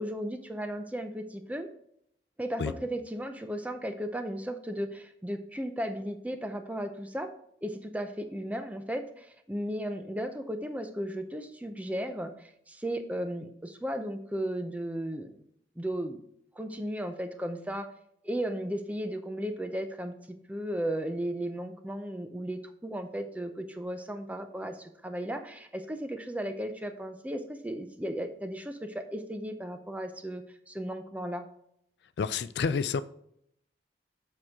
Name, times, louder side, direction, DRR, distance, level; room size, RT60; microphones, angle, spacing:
voice 1, 0.0-1.7 2.4-7.3 7.6-15.3 15.8-16.2 16.5-17.9 18.2-31.5, equal, 10° right, 7 dB, 0.6 m, -35 dB
voice 2, 32.2-33.0, left 5 dB, 65° left, 15 dB, 0.4 m, -29 dB
7.6 x 6.2 x 3.6 m, 0.72 s
head